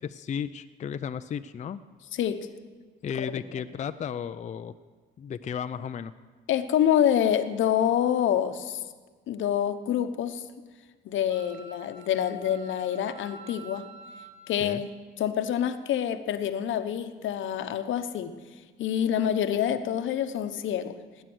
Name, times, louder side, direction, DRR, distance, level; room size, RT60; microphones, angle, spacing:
voice 1, 0.0-1.8 3.0-4.7 5.2-6.1 14.6-14.8, left 7 dB, 35° left, 10 dB, 0.4 m, -34 dB
voice 2, 2.1-2.5 3.2-3.7 6.5-8.8 9.3-10.4 11.0-13.9 14.5-14.9 15.2-18.3 18.8-21.0, left 9 dB, 75° left, 9 dB, 0.9 m, -27 dB
Wind instrument woodwind instrument, 11.3-14.5, right 4 dB, 80° right, 1.8 m, -48 dB
19.0 x 9.1 x 6.2 m, 1.4 s
cardioid pair, 90°, 20 cm